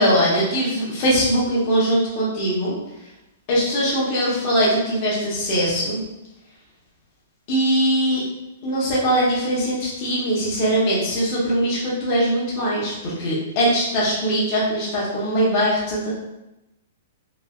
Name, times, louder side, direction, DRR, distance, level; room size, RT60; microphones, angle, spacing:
voice 1, 0.0-2.7 3.5-6.0 7.5-8.2 8.6-16.1, equal, 30° left, -7 dB, 0.9 m, -21 dB
3.2 x 2.9 x 2.4 m, 0.93 s
hypercardioid pair, 175°, 0 cm